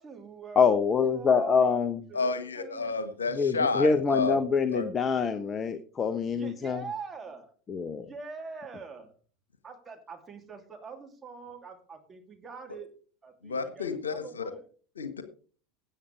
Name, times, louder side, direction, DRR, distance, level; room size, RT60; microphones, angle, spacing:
voice 1, 0.0-0.7 1.1-1.8 2.1-3.0 6.3-7.5 8.0-9.1 9.6-12.9 13.2-14.7, right 5 dB, 20° right, 3 dB, 2.8 m, -43 dB
voice 2, 0.6-2.0 3.3-6.8 7.7-8.1, left 5 dB, 25° left, 11 dB, 0.9 m, -25 dB
voice 3, 2.1-4.4 4.7-4.9 13.4-14.5 15.0-15.2, left 4 dB, 80° left, 10 dB, 1.5 m, -30 dB
16.5 x 8.7 x 3.4 m, 0.40 s
figure-of-eight pair, 80°, 0 cm